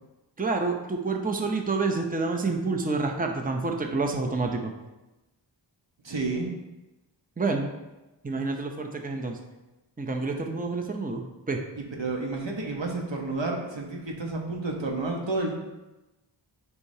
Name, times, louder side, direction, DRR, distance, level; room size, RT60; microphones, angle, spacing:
voice 1, 0.4-4.7 7.4-7.7 8.2-9.4 10.0-11.6, right 3 dB, 20° right, 3 dB, 0.6 m, -28 dB
voice 2, 6.0-6.5 12.0-15.6, right 3 dB, 85° right, 0 dB, 1.1 m, -30 dB
8.5 x 4.7 x 2.8 m, 1.0 s
wide cardioid pair, 60°, 43 cm